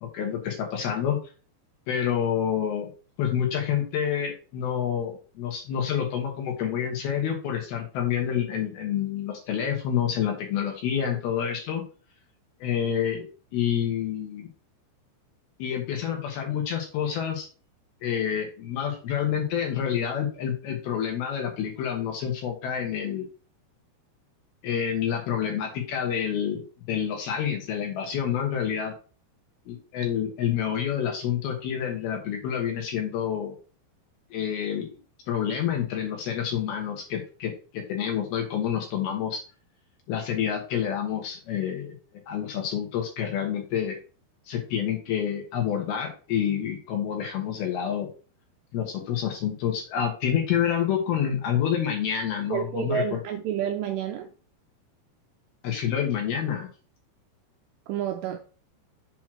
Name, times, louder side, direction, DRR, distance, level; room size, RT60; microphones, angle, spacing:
voice 1, 0.0-1.2 1.9-2.9 3.2-11.8 12.6-13.3 13.5-14.5 15.6-17.5 18.0-23.3 24.6-28.9 29.7-33.6 34.3-34.9 35.3-39.4 40.1-42.0 42.3-44.0 44.5-48.1 48.7-53.2 55.6-56.7, left 9 dB, 65° left, 2.8 m, -28 dB
voice 2, 52.5-54.3 57.9-58.4, right 9 dB, 80° right, 2.5 m, -29 dB
7.5 x 3.1 x 6.0 m
omnidirectional pair, 5.5 m